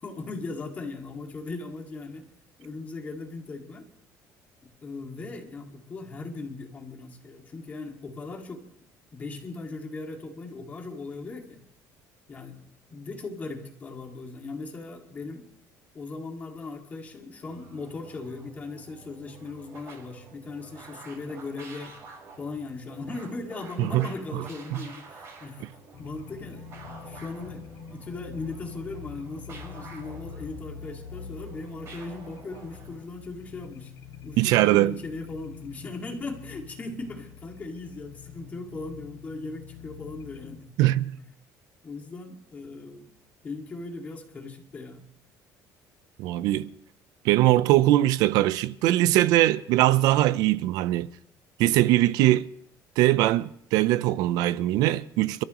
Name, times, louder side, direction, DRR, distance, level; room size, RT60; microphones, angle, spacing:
voice 1, 0.0-2.3 2.6-3.9 4.6-8.7 9.1-11.6 12.3-12.6 12.9-15.5 15.9-22.0 22.4-25.6 26.0-33.9 34.2-40.7 41.2-41.3 41.8-43.1 43.4-45.1, left 3 dB, 25° left, 2.2 m, -38 dB
sound 1, 17.4-33.1, right 4 dB, 45° right, 5.7 m, -49 dB
sound 2, 25.9-40.6, left 7 dB, 55° left, 1.5 m, -45 dB
voice 2, 34.4-35.0 40.8-41.1 46.2-46.7 47.2-51.1 51.6-52.5 53.0-55.4, right 15 dB, 70° right, 0.7 m, -21 dB
30.0 x 13.0 x 3.1 m
cardioid pair, 170°, 7 cm